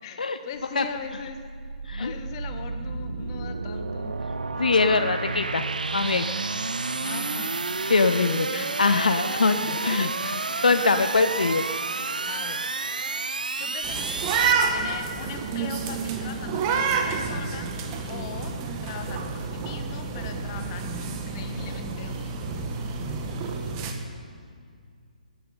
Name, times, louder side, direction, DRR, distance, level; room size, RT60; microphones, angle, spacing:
voice 1, 0.0-1.4 2.0-4.2 7.0-7.6 9.3-9.4 9.7-10.1 12.3-12.7 13.2-17.7 18.1-18.5 18.8-22.3, left 7 dB, 35° left, 7 dB, 1.3 m, -40 dB
sound 1, 0.5-14.5, right 3 dB, 80° right, 0.7 m, -31 dB
voice 2, 4.6-5.6 5.9-6.3 7.9-10.1 10.6-11.7, left 4 dB, 75° left, 10 dB, 0.7 m, -22 dB
sound 2, 13.8-23.9, right 5 dB, 30° right, 1.5 m, -29 dB
18.5 x 11.5 x 5.5 m, 2.3 s
figure-of-eight pair, 135°, 4 cm